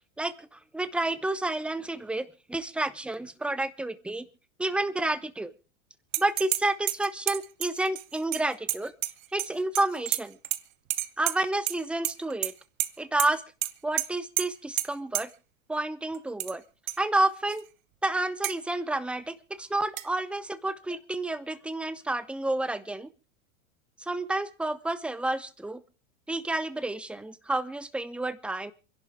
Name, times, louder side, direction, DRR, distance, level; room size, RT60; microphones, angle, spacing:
voice 1, 0.2-4.3 4.6-5.5 6.2-8.9 9.3-10.4 11.2-12.5 13.0-13.4 13.8-15.3 15.7-16.6 17.0-17.7 18.0-23.1 24.0-25.8 26.3-28.7, right 2 dB, 5° right, 14 dB, 0.7 m, -30 dB
sound 1, 6.1-6.6 6.9-9.5 9.8-10.6 10.9-11.8 12.0-12.5 12.8-12.9 13.2-13.3 13.6-13.7 14.0-14.1 14.4-14.5 14.8-14.9 15.1-15.2 16.1-16.5 16.9-17.0 17.5-17.6 18.4-18.6 20.0-20.1, right 16 dB, 80° right, 1.1 m, -29 dB
27.5 x 11.0 x 3.6 m, 0.34 s
supercardioid pair, 130°, 40 cm